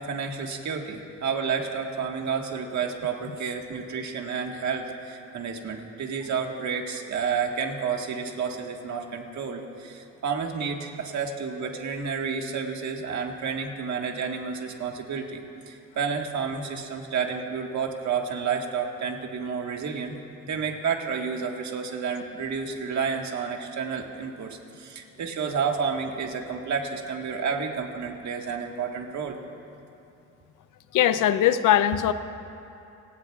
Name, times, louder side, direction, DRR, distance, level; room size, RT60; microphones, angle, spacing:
voice 1, 0.0-20.2 20.4-29.4, right 6 dB, 65° right, 2 dB, 1.7 m, -30 dB
voice 2, 30.9-32.1, left 11 dB, 85° left, 12 dB, 0.7 m, -20 dB
26.5 x 19.0 x 2.4 m, 2.7 s
cardioid pair, 120°, 31 cm